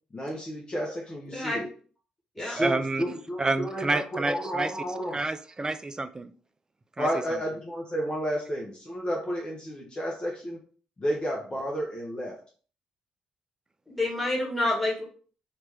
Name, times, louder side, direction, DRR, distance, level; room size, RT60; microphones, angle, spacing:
voice 1, 0.1-1.7 2.4-5.2 7.0-10.6 11.0-12.4, equal, 30° left, -2 dB, 1.0 m, -31 dB
voice 2, 1.3-1.6 2.4-2.6 13.9-15.0, left 1 dB, 5° left, -3 dB, 1.8 m, -28 dB
voice 3, 2.6-3.0 3.4-4.7 5.1-6.3 7.0-7.1, right 2 dB, 25° right, 12 dB, 0.4 m, -28 dB
3.2 x 2.9 x 3.5 m, 0.43 s
hypercardioid pair, 45°, 3 cm